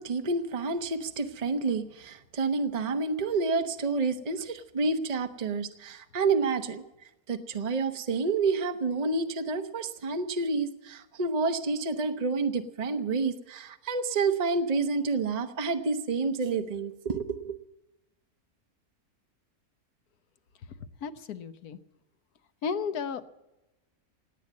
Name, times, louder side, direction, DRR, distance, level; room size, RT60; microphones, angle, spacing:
voice 1, 0.0-6.8 7.3-17.6, right 4 dB, 30° right, 7 dB, 0.9 m, -29 dB
voice 2, 21.0-21.8 22.6-23.2, left 5 dB, 80° left, 11 dB, 1.4 m, -33 dB
18.5 x 9.1 x 8.4 m, 0.98 s
omnidirectional pair, 1.6 m